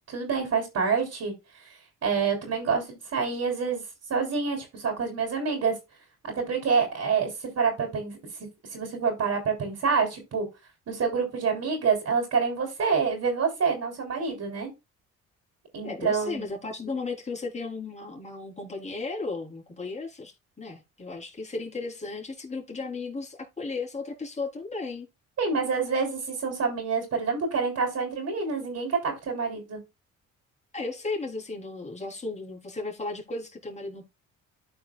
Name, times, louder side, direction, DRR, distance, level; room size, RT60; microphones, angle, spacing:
voice 1, 0.1-1.3 1.6-3.8 4.1-5.8 6.2-8.2 8.7-10.5 10.9-14.7 15.7-16.4 25.4-29.8, right 5 dB, 60° right, 3.4 m, -27 dB
voice 2, 15.8-25.1 30.7-34.1, left 3 dB, 20° left, 3.6 m, -35 dB
13.5 x 4.6 x 2.3 m
cardioid pair, 90°, 30 cm